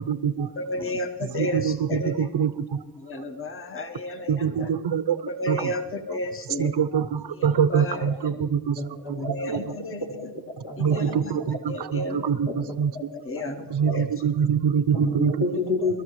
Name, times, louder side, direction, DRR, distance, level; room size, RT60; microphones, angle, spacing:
voice 1, 0.0-0.5 1.2-2.6 4.3-5.2 5.5-5.7 6.6-8.8 9.4-9.6 10.8-12.9 13.7-15.3, right 7 dB, 75° right, 13 dB, 0.8 m, -24 dB
voice 2, 0.6-2.3 3.0-4.7 5.3-6.7 7.7-8.3 9.2-10.0 10.8-11.4 11.7-12.2 13.1-13.6 13.9-14.1, left 1 dB, 30° left, 5 dB, 1.3 m, -32 dB
voice 3, 8.3-11.4 12.0-12.1 12.7-12.8 13.3-13.6 15.0-16.0, left 2 dB, 70° left, -2 dB, 3.4 m, -31 dB
24.0 x 13.0 x 3.1 m, 1.0 s
cardioid pair, 60°, 41 cm